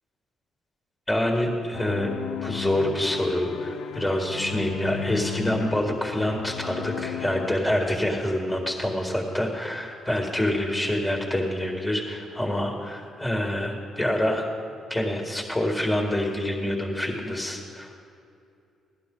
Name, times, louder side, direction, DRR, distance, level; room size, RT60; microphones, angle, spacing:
voice 1, 1.1-2.1 2.4-14.4 14.9-17.9, left 1 dB, 5° left, 0 dB, 1.9 m, -26 dB
sound 1, 1.7-7.5, left 9 dB, 80° left, 0.5 m, -34 dB
16.5 x 11.5 x 3.9 m, 2.5 s
cardioid pair, 90°, 0 cm